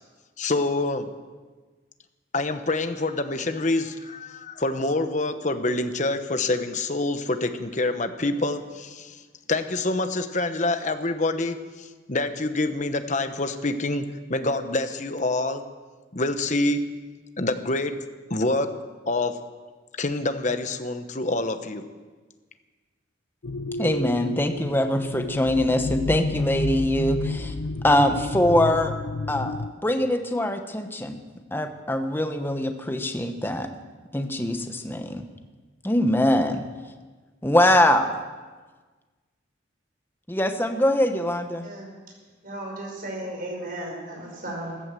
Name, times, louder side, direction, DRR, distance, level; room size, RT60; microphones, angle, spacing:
voice 1, 0.4-1.1 2.3-9.2 9.5-15.6 16.1-16.9 17.4-18.0 18.3-18.7 19.1-19.4 20.0-21.8, left 2 dB, 40° left, 9 dB, 1.1 m, -26 dB
sound 1, 23.4-29.7, left 3 dB, 65° left, 0.5 m, -30 dB
voice 2, 23.8-27.5 27.8-28.9 29.3-29.6 29.8-31.2 31.5-33.7 34.1-35.2 35.8-36.6 37.4-38.1 40.3-41.7, left 1 dB, 10° left, 6 dB, 1.0 m, -23 dB
voice 3, 42.4-44.8, right 1 dB, 45° right, 0 dB, 5.5 m, -35 dB
15.0 x 12.5 x 7.6 m, 1.4 s
head